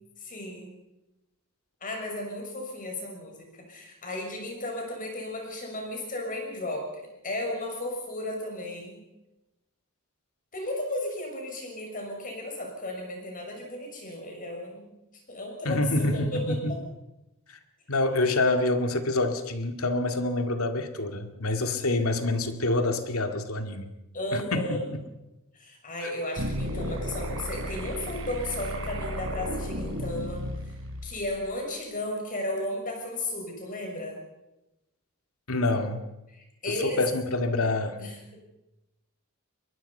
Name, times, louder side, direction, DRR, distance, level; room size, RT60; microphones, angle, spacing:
voice 1, 0.2-0.7 1.8-6.9 7.2-9.0 10.5-14.9 15.3-16.8 24.1-24.9 25.5-30.4 31.0-34.2 36.6-37.0 38.0-38.4, left 1 dB, 40° left, 1 dB, 6.4 m, -34 dB
voice 2, 15.6-16.8 17.9-23.9 24.3-24.8 26.0-26.1 35.5-36.0 36.7-38.0, left 2 dB, 85° left, 7 dB, 2.1 m, -27 dB
sound 1, 26.4-31.4, equal, 70° right, 4.6 m, -34 dB
23.0 x 21.5 x 5.6 m, 0.94 s
head